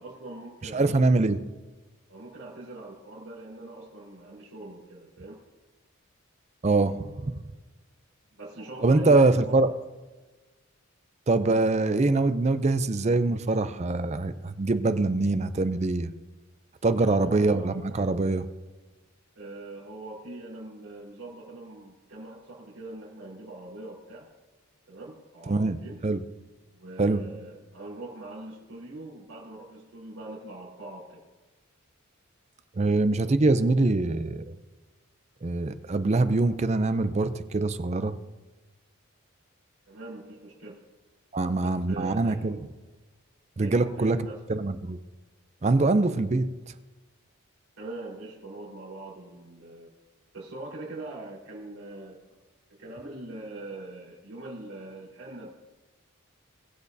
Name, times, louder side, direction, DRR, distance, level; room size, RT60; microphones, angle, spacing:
voice 1, 0.0-1.0 2.1-5.4 8.4-9.6 17.0-17.7 19.3-24.3 24.9-26.0 26.7-31.2 39.9-40.8 41.4-42.5 43.6-44.4 47.8-49.9 50.3-52.2 52.7-55.5, right 2 dB, 85° right, -8 dB, 4.2 m, -42 dB
voice 2, 0.7-1.4 6.6-7.3 8.8-9.7 11.3-16.1 16.8-18.5 25.5-25.8 26.0-26.2 27.0-27.2 32.8-34.4 35.4-38.2 41.3-42.7 43.6-44.2 44.5-45.0 45.6-46.7, right 2 dB, 30° right, 11 dB, 0.4 m, -24 dB
21.5 x 8.5 x 2.7 m, 1.2 s
head